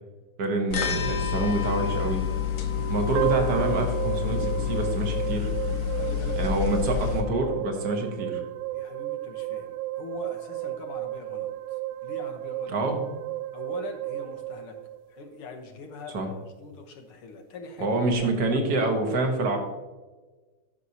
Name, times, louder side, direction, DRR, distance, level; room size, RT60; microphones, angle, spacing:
voice 1, 0.4-2.3 2.9-5.5 6.3-8.4 12.7-13.0 16.1-16.3 17.8-19.6, right 2 dB, 50° right, 3 dB, 1.8 m, -27 dB
sound 1, 0.7-7.2, left 8 dB, 65° left, 1.6 m, -28 dB
sound 2, 3.1-15.4, right 16 dB, 75° right, 1.1 m, -33 dB
voice 2, 4.7-5.1 6.0-6.9 8.7-12.8 13.5-14.8 15.1-16.2 16.6-18.9, left 4 dB, 85° left, 3 dB, 1.9 m, -43 dB
12.5 x 6.3 x 2.8 m, 1.2 s
omnidirectional pair, 2.4 m